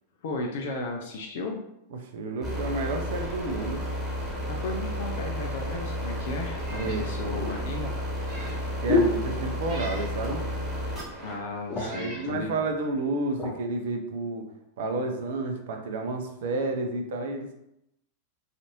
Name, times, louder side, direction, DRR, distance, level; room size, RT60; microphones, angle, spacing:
voice 1, 0.2-1.6 4.5-7.9 11.2-12.6, left 2 dB, 55° left, 1 dB, 0.3 m, -35 dB
voice 2, 1.9-3.8 6.7-7.6 8.8-10.5 11.8-14.5 14.8-17.5, right 2 dB, 55° right, 4 dB, 0.4 m, -31 dB
sound 1, 2.4-11.4, left 1 dB, 5° right, 1.2 m, -32 dB
Meow, 6.6-7.1 7.5-7.6 8.1-8.7 9.6-10.1 11.0-11.1 11.7-12.3, equal, 35° right, 1.0 m, -43 dB
sound 2, 6.8-9.9 10.2-10.7 11.0-11.1 11.4-12.1 12.8-13.6 14.2-14.4, left 2 dB, 25° left, 0.7 m, -31 dB
2.5 x 2.4 x 2.9 m, 0.82 s
figure-of-eight pair, 90°, 0 cm